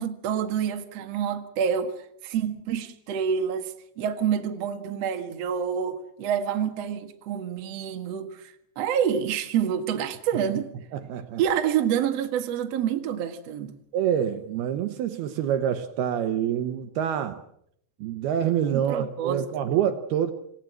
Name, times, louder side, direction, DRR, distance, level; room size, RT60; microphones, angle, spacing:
voice 1, 0.0-2.0 2.2-10.7 11.4-13.8 18.7-19.5, right 8 dB, 50° right, 6 dB, 2.1 m, -27 dB
voice 2, 10.9-11.4 13.9-17.4 18.0-20.3, right 9 dB, 70° right, 9 dB, 2.7 m, -26 dB
27.0 x 17.5 x 7.6 m, 0.71 s
omnidirectional pair, 5.1 m